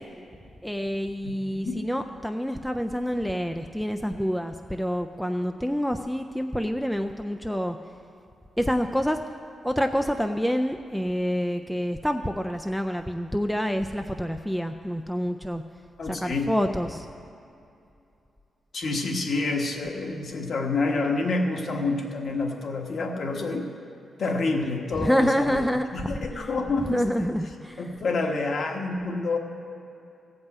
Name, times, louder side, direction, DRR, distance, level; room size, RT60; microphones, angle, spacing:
voice 1, 0.6-7.8 8.6-9.2 9.6-15.6 16.1-17.1 25.0-25.9 26.3-26.5 26.9-27.8, equal, ahead, 6 dB, 0.3 m, -27 dB
voice 2, 16.0-16.5 18.7-23.7 24.2-25.6 25.9-27.3 27.8-29.4, left 3 dB, 50° left, 2 dB, 1.2 m, -28 dB
15.0 x 5.4 x 8.1 m, 2.6 s
wide cardioid pair, 155°, 0 cm